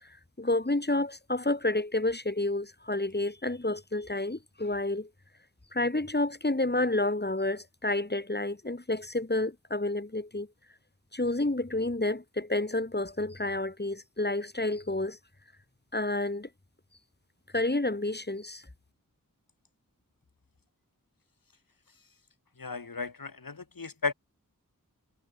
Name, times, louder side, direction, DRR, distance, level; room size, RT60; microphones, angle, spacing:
voice 1, 0.0-5.1 5.7-10.5 11.1-15.2 15.9-16.5 17.5-18.6, left 2 dB, 30° left, 3.4 m, -30 dB
voice 2, 22.6-24.1, left 4 dB, 85° left, 2.7 m, -34 dB
wide cardioid pair, 45°, 33 cm